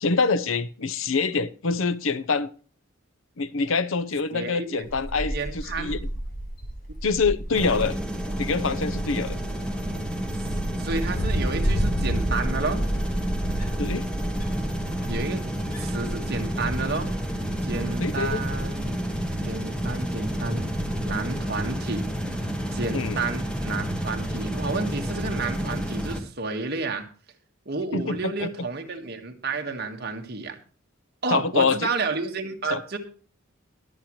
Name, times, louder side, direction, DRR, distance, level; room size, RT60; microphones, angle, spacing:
voice 1, 0.0-2.5 3.4-6.0 7.0-8.0 8.4-9.4 13.8-14.1 18.0-18.4 22.9-23.2 27.9-28.7 31.3-31.9 32.7-32.8, left 4 dB, 75° left, 13 dB, 0.7 m, -25 dB
voice 2, 4.3-4.8 5.3-6.0 10.8-12.8 15.1-15.4 15.8-17.1 17.6-18.9 19.4-20.6 21.0-22.1 22.7-27.1 27.7-30.6 31.2-33.0, right 3 dB, 50° right, 4 dB, 1.7 m, -31 dB
Wind, 4.8-21.1, right 1 dB, 40° left, 4.2 m, -32 dB
sound 1, 7.5-26.2, equal, 5° left, 1.8 m, -30 dB
22.0 x 7.4 x 3.2 m, 0.40 s
head